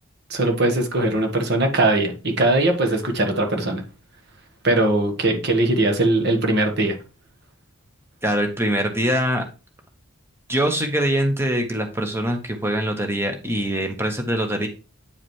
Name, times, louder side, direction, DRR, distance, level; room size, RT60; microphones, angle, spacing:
voice 1, 0.3-3.8 4.6-6.9, right 2 dB, 50° right, 4 dB, 1.4 m, -20 dB
voice 2, 8.2-9.4 10.5-14.7, right 1 dB, 10° right, 4 dB, 1.1 m, -23 dB
8.7 x 4.9 x 3.1 m, 0.32 s
head